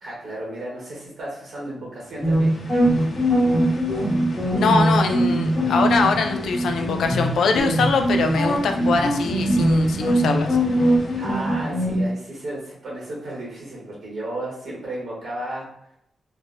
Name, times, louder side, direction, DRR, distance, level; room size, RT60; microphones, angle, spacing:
voice 1, 0.0-2.6 11.2-15.7, right 1 dB, 75° right, -5 dB, 1.0 m, -33 dB
sound 1, 2.0-12.0, left 1 dB, 50° left, 0.6 m, -36 dB
sound 2, 2.2-12.0, right 1 dB, 15° left, 1.3 m, -21 dB
voice 2, 4.5-10.5, left 4 dB, 90° left, 5 dB, 0.3 m, -23 dB
3.3 x 2.1 x 2.5 m, 0.74 s
cardioid pair, 100°, 0 cm